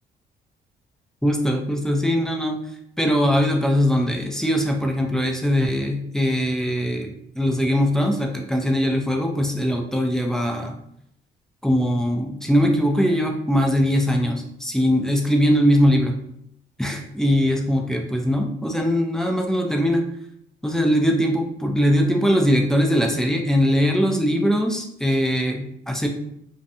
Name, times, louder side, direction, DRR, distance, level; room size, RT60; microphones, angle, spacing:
voice 1, 1.2-2.6 3.0-10.8 11.6-16.2 16.8-20.0 20.6-26.1, equal, 5° left, 2 dB, 0.4 m, -21 dB
2.5 x 2.2 x 2.7 m, 0.73 s
cardioid pair, 90°, 20 cm